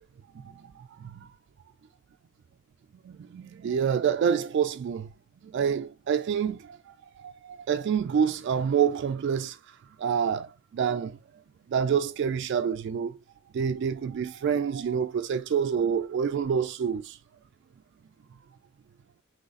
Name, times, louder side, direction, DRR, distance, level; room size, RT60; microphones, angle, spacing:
voice 1, 0.4-1.3 3.0-5.1 5.4-11.2 11.7-13.2 13.5-17.2, right 7 dB, 55° right, 0.3 m, -28 dB
4.0 x 3.1 x 3.8 m
head